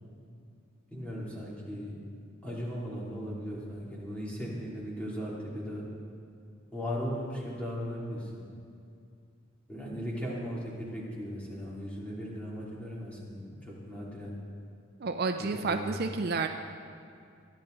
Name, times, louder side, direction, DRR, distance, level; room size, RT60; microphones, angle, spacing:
voice 1, 0.9-1.9 2.4-5.8 6.7-8.4 9.7-14.3 15.5-16.0, equal, 5° left, -6 dB, 3.1 m, -37 dB
voice 2, 15.0-16.5, right 4 dB, 50° right, 6 dB, 0.5 m, -30 dB
23.0 x 11.0 x 3.9 m, 2.4 s
head